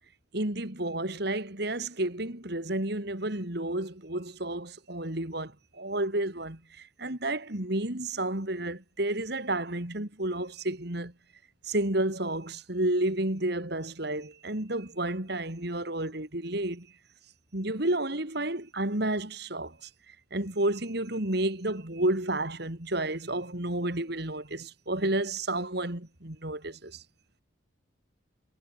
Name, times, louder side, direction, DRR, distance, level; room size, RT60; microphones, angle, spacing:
voice 1, 0.3-5.5 5.8-6.6 7.0-11.1 11.6-16.9 17.5-19.9 20.3-27.0, right 1 dB, 55° right, 3.0 m, -31 dB
head